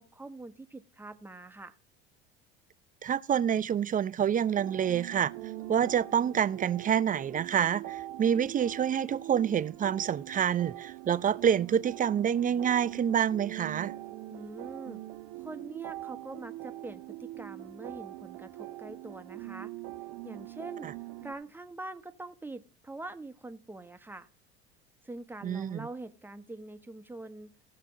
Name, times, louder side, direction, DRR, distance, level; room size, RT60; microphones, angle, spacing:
voice 1, 0.0-1.8 14.3-15.0 15.4-19.7 20.2-20.9 21.2-24.3 25.0-27.5, right 2 dB, 5° right, 1.0 m, -44 dB
voice 2, 3.0-5.3 5.7-13.9 25.4-25.9, right 8 dB, 25° right, 0.5 m, -27 dB
sound 1, 4.5-21.3, right 16 dB, 60° right, 1.1 m, -42 dB
16.5 x 6.7 x 3.8 m
hypercardioid pair, 75°, 32 cm